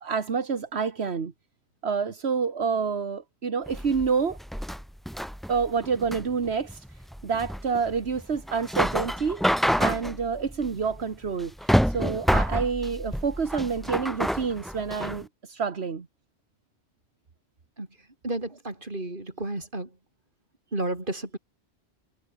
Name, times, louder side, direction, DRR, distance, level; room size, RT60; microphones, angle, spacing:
voice 1, 0.0-1.3 1.8-4.4 5.5-6.9 7.2-9.4 9.8-16.1, right 5 dB, 75° right, 1.8 m, -28 dB
sound 1, 3.7-15.2, equal, ahead, 0.9 m, -28 dB
voice 2, 18.2-19.9 20.7-21.4, right 2 dB, 50° right, 4.6 m, -32 dB
omnidirectional pair, 1.1 m